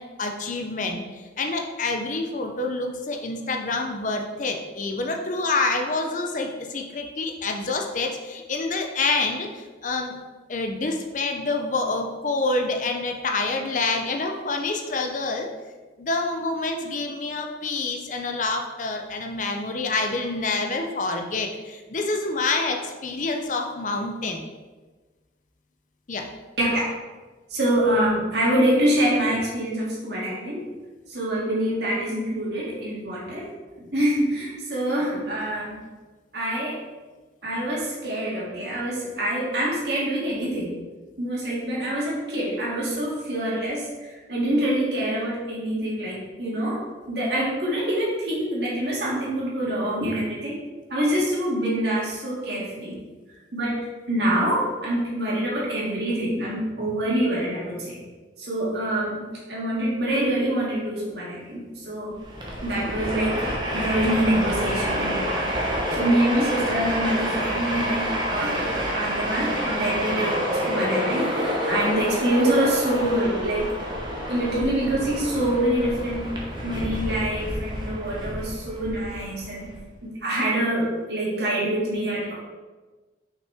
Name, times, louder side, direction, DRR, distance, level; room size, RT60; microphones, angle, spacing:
voice 1, 0.0-10.2 10.5-15.5 16.0-24.5 26.1-26.3, left 3 dB, 40° left, 3 dB, 0.6 m, -27 dB
voice 2, 27.5-30.6 31.1-33.4 33.9-35.8 36.3-36.8 37.4-40.8 41.2-46.8 47.1-50.6 50.9-53.0 53.5-53.8 54.1-58.0 58.4-62.2 62.6-63.4 63.7-65.5 65.9-70.4 70.7-73.7 74.3-76.3 76.6-79.7 80.0-82.3, right 1 dB, 60° right, -5 dB, 2.1 m, -25 dB
Train, 62.2-79.8, equal, 25° right, 1.0 m, -28 dB
5.8 x 5.7 x 3.5 m, 1.3 s
head